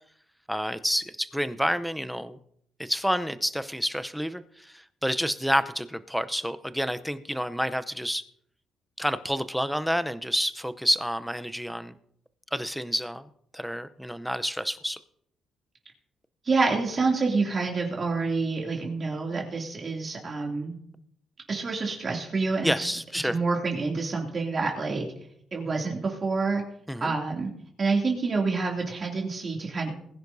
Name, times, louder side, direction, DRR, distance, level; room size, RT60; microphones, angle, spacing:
voice 1, 0.5-2.4 2.8-8.2 9.0-11.9 12.5-13.3 13.5-15.0 22.6-23.4 26.9-27.1, equal, ahead, 12 dB, 0.7 m, -29 dB
voice 2, 16.4-20.8 21.5-22.9 23.2-25.1 25.5-26.6 27.0-27.5 27.8-29.9, right 4 dB, 40° right, 0 dB, 2.7 m, -27 dB
20.5 x 10.5 x 2.7 m, 0.68 s
cardioid pair, 90°, 0 cm